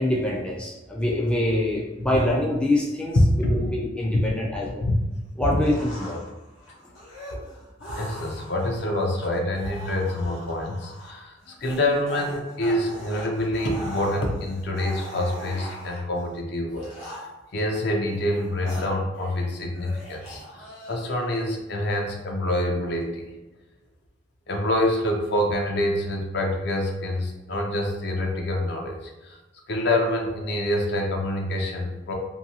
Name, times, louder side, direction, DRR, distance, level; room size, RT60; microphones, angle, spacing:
voice 1, 0.0-3.2 3.5-4.8 5.4-6.2, left 1 dB, 5° left, -3 dB, 0.3 m, -25 dB
sound 1, 5.6-16.2 16.7-17.5 18.1-19.5 19.7-21.2, equal, 80° left, 1.0 m, -40 dB
voice 2, 7.9-11.3 11.6-17.2 17.5-20.4 20.9-23.3 24.5-29.4 29.7-32.1, left 1 dB, 60° left, 1 dB, 0.6 m, -26 dB
2.6 x 2.6 x 2.8 m, 1.1 s
head